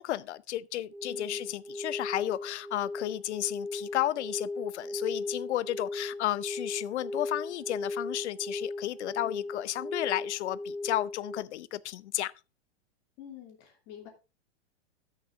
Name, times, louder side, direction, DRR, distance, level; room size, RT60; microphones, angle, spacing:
voice 1, 0.0-12.3, left 14 dB, 80° left, 0.8 m, -33 dB
sound 1, 0.9-11.4, left 2 dB, 15° right, 2.1 m, -37 dB
voice 2, 1.1-1.5 9.2-9.5 13.2-14.1, left 10 dB, 30° left, 2.8 m, -49 dB
13.0 x 6.7 x 3.6 m
supercardioid pair, 170°, 34 cm